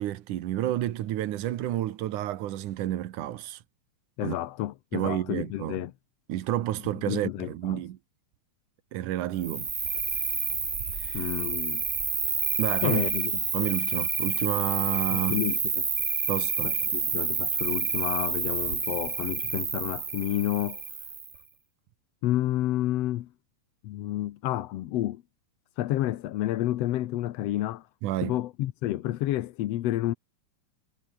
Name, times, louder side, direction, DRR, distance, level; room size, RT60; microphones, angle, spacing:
voice 1, 0.0-3.6 4.2-4.4 4.9-5.8 6.3-8.0 8.9-9.7 11.0-11.2 12.6-13.0 13.5-15.4 16.3-16.7 28.0-28.4, right 13 dB, 85° right, 2.7 m, -30 dB
voice 2, 4.2-5.9 7.1-7.8 11.1-11.8 12.8-13.3 15.1-15.9 16.6-20.8 22.2-23.3 23.8-25.2 25.8-27.9 28.2-30.1, left 14 dB, 70° left, 1.8 m, -30 dB
Cricket, 9.4-21.4, right 5 dB, 30° right, 1.8 m, -29 dB
omnidirectional pair, 3.4 m